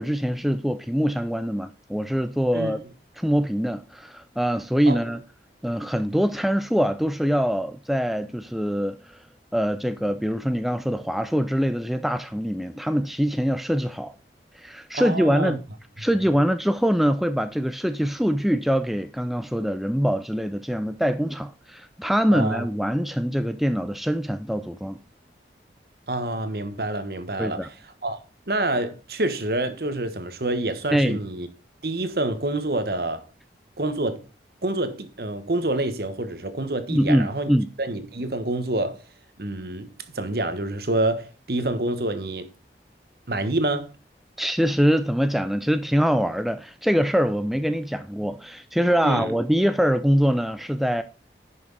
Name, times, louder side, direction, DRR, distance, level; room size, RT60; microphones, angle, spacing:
voice 1, 0.0-2.8 3.2-5.2 5.6-9.2 9.5-14.1 14.6-15.5 16.0-25.0 27.4-27.7 30.9-31.2 36.9-37.7 44.4-51.0, equal, ahead, 0.4 m, -23 dB
voice 2, 14.9-15.6 22.3-22.7 26.1-27.7 28.0-28.2 28.5-31.5 31.8-33.3 33.8-34.2 34.6-37.5 37.8-39.0 39.4-42.5 43.3-43.9 49.0-49.3, right 2 dB, 60° right, 1.2 m, -27 dB
11.0 x 6.0 x 4.0 m
head